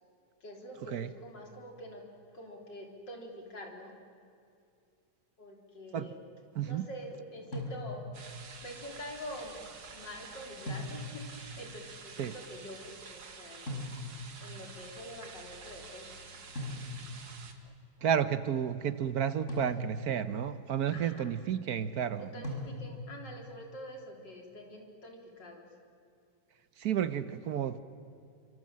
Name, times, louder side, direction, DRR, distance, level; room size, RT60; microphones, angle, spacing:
voice 1, 0.4-2.1 2.3-4.0 5.4-6.3 6.6-8.1 8.6-9.6 9.9-13.8 14.4-16.3 20.9-21.3 22.2-25.7, equal, 80° left, 1 dB, 4.4 m, -46 dB
voice 2, 6.6-6.9 12.2-12.3 18.0-22.3 26.8-27.8, right 9 dB, 60° right, 13 dB, 1.3 m, -31 dB
sound 1, 7.5-8.3 10.7-11.4 13.7-14.4 16.6-17.3 19.5-20.3 22.4-23.2, left 1 dB, 40° left, 5.8 m, -39 dB
sound 2, 8.1-17.5, right 5 dB, 85° right, 2.5 m, -49 dB
29.0 x 25.0 x 7.5 m, 2.5 s
omnidirectional pair, 1.9 m